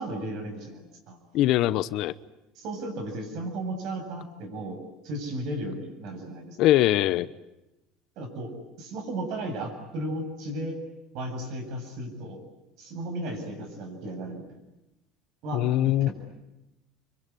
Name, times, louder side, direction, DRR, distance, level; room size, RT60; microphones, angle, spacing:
voice 1, 0.0-1.2 2.5-4.8 5.0-6.6 8.2-8.5 8.8-10.8 11.1-12.4 12.8-14.4 15.4-16.1, right 1 dB, 60° right, 5 dB, 7.8 m, -35 dB
voice 2, 1.3-2.1 6.6-7.3 15.5-16.1, left 14 dB, 60° left, 16 dB, 1.0 m, -22 dB
25.0 x 24.0 x 9.9 m, 0.94 s
supercardioid pair, 125°, 0 cm